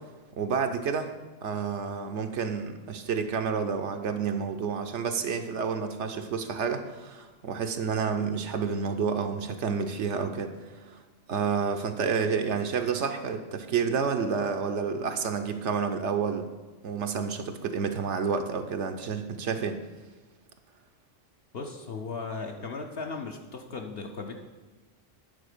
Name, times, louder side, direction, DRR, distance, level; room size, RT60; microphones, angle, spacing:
voice 1, 0.4-1.1 1.4-10.5 10.8-11.0 11.3-16.5 16.8-19.8, right 6 dB, 75° right, 6 dB, 1.0 m, -29 dB
voice 2, 21.5-24.3, left 4 dB, 55° left, 2 dB, 0.9 m, -36 dB
9.7 x 4.2 x 6.6 m, 1.3 s
omnidirectional pair, 1.2 m